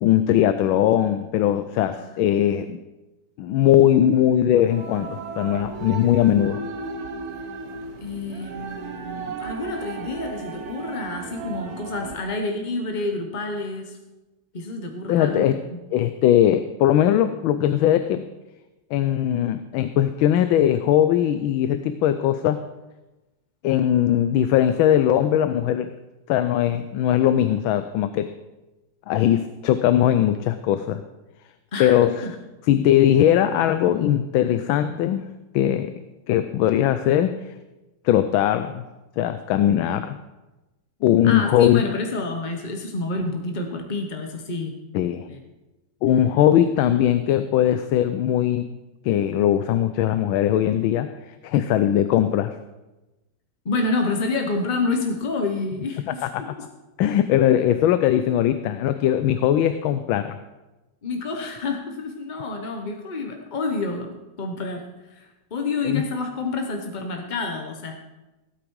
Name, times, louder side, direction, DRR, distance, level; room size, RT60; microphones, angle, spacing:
voice 1, 0.0-2.8 3.4-6.6 15.1-15.6 15.9-18.2 18.9-22.6 23.6-25.9 26.3-28.3 29.1-31.0 31.8-32.2 32.7-35.2 35.5-35.9 36.3-37.3 38.0-38.8 39.2-40.2 41.0-41.8 44.9-45.3 46.0-48.7 49.0-52.6 56.1-56.5 57.0-60.4 65.8-66.0, left 11 dB, 80° left, 11 dB, 1.4 m, -20 dB
sound 1, 4.7-12.2, right 4 dB, 55° right, 1.3 m, -35 dB
voice 2, 8.0-14.0 14.5-15.8 31.7-32.3 41.2-44.8 45.3-45.4 53.6-56.7 61.0-67.9, left 3 dB, 40° left, 4 dB, 0.6 m, -29 dB
16.5 x 8.7 x 4.7 m, 1.1 s
omnidirectional pair, 2.2 m